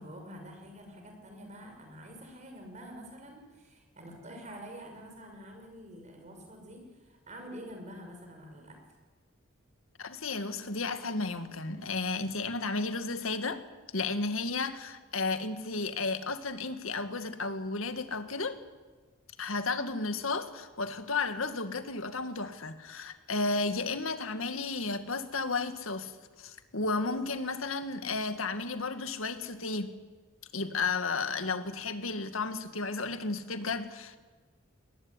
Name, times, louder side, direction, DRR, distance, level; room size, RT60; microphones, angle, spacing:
voice 1, 0.0-8.8, equal, 35° right, 3 dB, 6.1 m, -47 dB
voice 2, 10.0-13.6 13.9-18.6 19.4-26.1 26.4-29.9 30.5-34.2, left 3 dB, 80° left, 10 dB, 2.0 m, -33 dB
21.0 x 19.5 x 9.7 m, 1.4 s
head